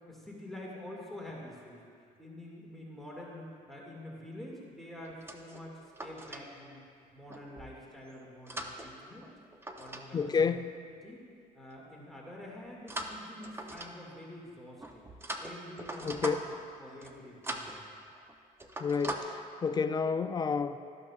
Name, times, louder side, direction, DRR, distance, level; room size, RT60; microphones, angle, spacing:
voice 1, 0.1-1.8 2.2-6.8 7.1-9.3 9.8-10.3 10.8-11.2 11.5-15.0 15.4-17.8, left 1 dB, ahead, -4 dB, 2.0 m, -47 dB
sound 1, 5.0-6.4 7.3-7.7 8.2-10.1 10.3-10.6 12.9-14.2 14.8-16.7 17.0-17.2 17.4-17.8 18.2-18.3 18.6-19.2, right 1 dB, 15° right, 0.7 m, -41 dB
voice 2, 10.1-10.7 16.0-16.4 18.8-20.8, left 5 dB, 25° left, 11 dB, 0.4 m, -30 dB
13.0 x 12.0 x 2.4 m, 2.3 s
cardioid pair, 105°, 16 cm